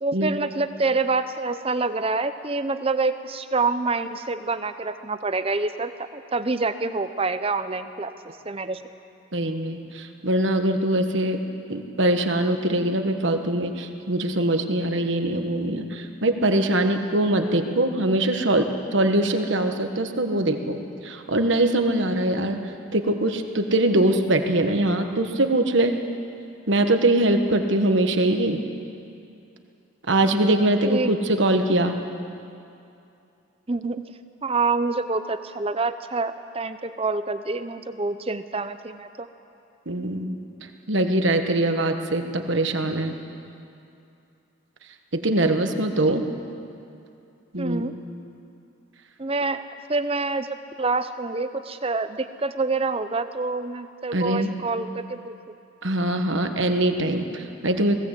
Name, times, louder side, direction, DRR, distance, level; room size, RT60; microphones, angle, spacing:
voice 1, 0.0-8.1 8.4-8.8 30.8-31.1 33.7-34.0 34.4-39.3 46.1-46.2 47.6-47.9 49.2-49.6 49.9-55.3, right 3 dB, 25° right, 11 dB, 0.7 m, -27 dB
voice 2, 9.3-11.4 11.7-18.7 18.9-22.6 22.9-25.9 26.7-28.6 30.1-32.0 39.9-40.4 40.9-43.2 45.1-46.3 47.5-47.8 54.1-54.5 55.8-58.0, right 1 dB, 60° right, 6 dB, 1.4 m, -22 dB
19.0 x 17.0 x 8.2 m, 2.6 s
head